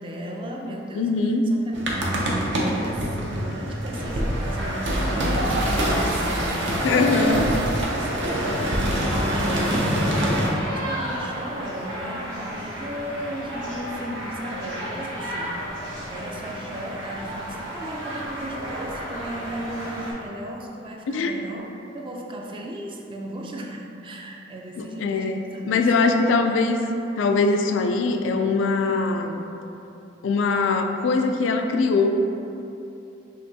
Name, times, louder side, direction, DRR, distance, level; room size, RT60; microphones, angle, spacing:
voice 1, 0.0-1.1 1.5-7.5 7.9-26.3, right 1 dB, 30° right, 0 dB, 0.4 m, -36 dB
voice 2, 0.9-1.5 6.8-7.5 21.1-21.4 24.8-25.4 25.7-26.8 27.2-29.4 30.2-32.1, left 4 dB, 85° left, 5 dB, 0.4 m, -22 dB
sound 1, 1.7-10.5, equal, 70° right, 0.7 m, -25 dB
sound 2, 4.0-20.1, equal, 85° right, 1.3 m, -33 dB
5.6 x 3.0 x 2.7 m, 2.8 s
head